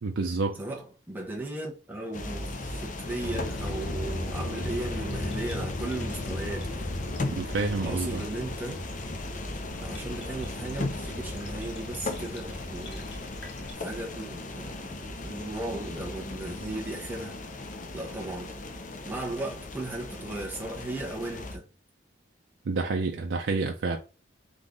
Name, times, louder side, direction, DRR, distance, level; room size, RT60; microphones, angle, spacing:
voice 1, 0.0-0.6 7.4-8.2 22.7-24.0, right 3 dB, 85° right, 0.5 m, -28 dB
voice 2, 0.6-6.9 7.8-8.8 9.8-13.1 13.6-17.4 17.9-18.5 19.0-21.7, right 2 dB, 10° right, 1.0 m, -36 dB
sound 1, 2.1-21.6, left 2 dB, 45° left, 0.7 m, -37 dB
sound 2, 3.2-13.7, left 1 dB, 65° left, 0.9 m, -38 dB
3.8 x 3.2 x 3.8 m
head